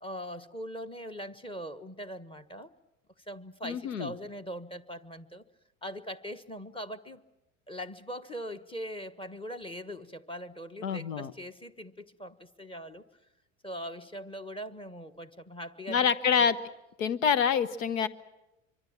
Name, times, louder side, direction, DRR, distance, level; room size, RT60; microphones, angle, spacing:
voice 1, 0.0-2.7 3.2-5.4 5.8-7.2 7.7-13.0 13.6-16.4, equal, 15° left, 10 dB, 1.3 m, -41 dB
voice 2, 3.6-4.1 10.8-11.3 15.9-16.6 17.0-18.1, left 7 dB, 80° left, 17 dB, 1.1 m, -26 dB
25.0 x 23.5 x 7.4 m, 0.98 s
hypercardioid pair, 75°, 39 cm